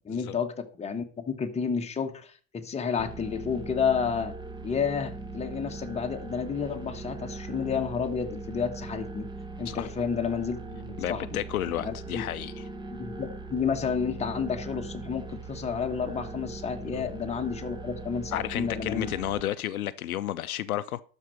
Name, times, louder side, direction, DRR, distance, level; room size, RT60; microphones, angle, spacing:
voice 1, 0.0-4.3 4.6-9.3 9.6-11.4 11.8-12.2 12.9-19.1, left 6 dB, 15° left, 1.3 m, -31 dB
sound 1, 3.0-19.4, right 3 dB, 10° right, 1.1 m, -40 dB
voice 2, 11.0-12.6 16.9-17.1 18.3-21.0, left 12 dB, 70° left, 0.6 m, -32 dB
12.0 x 4.7 x 6.7 m
figure-of-eight pair, 90°, 44 cm